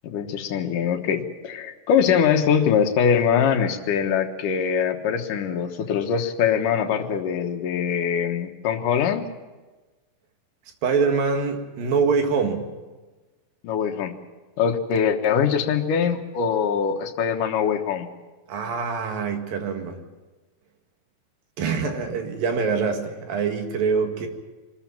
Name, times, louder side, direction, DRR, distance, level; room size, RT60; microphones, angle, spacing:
voice 1, 0.0-9.2 13.6-14.1 14.6-18.1, left 7 dB, 70° left, 4 dB, 2.8 m, -23 dB
voice 2, 10.8-12.7 18.5-20.0 21.6-24.3, right 5 dB, 75° right, 5 dB, 3.6 m, -24 dB
23.5 x 13.5 x 8.9 m, 1.2 s
omnidirectional pair, 4.1 m